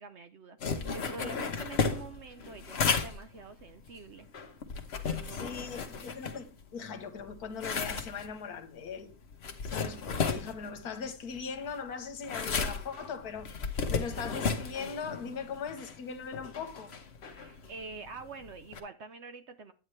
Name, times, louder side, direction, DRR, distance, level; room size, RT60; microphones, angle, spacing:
voice 1, 0.0-4.3 5.0-5.7 17.2-19.7, right 4 dB, 55° right, 0.9 m, -46 dB
sound 1, 0.6-6.8 7.2-18.8, left 5 dB, 45° left, 1.1 m, -35 dB
voice 2, 0.8-1.6 5.3-9.1 9.6-16.9, left 6 dB, 75° left, 1.6 m, -40 dB
9.3 x 8.9 x 3.2 m
omnidirectional pair, 1.6 m